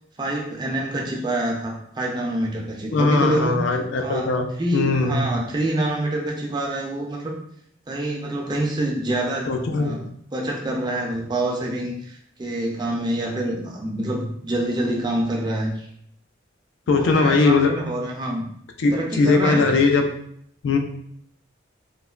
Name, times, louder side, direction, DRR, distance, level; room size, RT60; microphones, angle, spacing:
voice 1, 0.2-3.6 4.0-7.3 7.9-10.0 10.3-15.9 16.9-18.5 18.9-19.8, right 1 dB, 20° right, -1 dB, 0.3 m, -26 dB
voice 2, 2.9-4.5 4.7-5.3 9.5-10.0 16.9-17.7 18.8-20.0 20.6-20.8, left 3 dB, 65° left, 4 dB, 0.3 m, -20 dB
3.0 x 2.1 x 2.3 m, 0.69 s
head